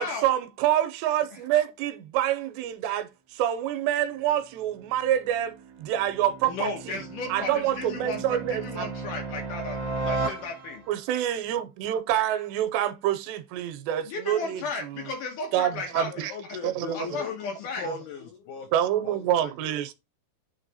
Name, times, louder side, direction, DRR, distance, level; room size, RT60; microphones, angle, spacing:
voice 1, 0.0-7.0 7.3-8.9 10.9-15.1 15.5-16.3 16.6-17.2 17.8-18.0 18.7-19.9, right 11 dB, 85° right, 2.9 m, -27 dB
sound 1, 4.6-11.0, right 3 dB, 60° right, 1.1 m, -35 dB
voice 2, 6.4-9.8 10.1-10.8 14.1-16.1 16.9-17.9, left 3 dB, 70° left, 2.1 m, -34 dB
voice 3, 16.1-18.7 19.0-19.8, left 7 dB, 90° left, 1.7 m, -39 dB
9.6 x 3.2 x 4.1 m
omnidirectional pair, 4.8 m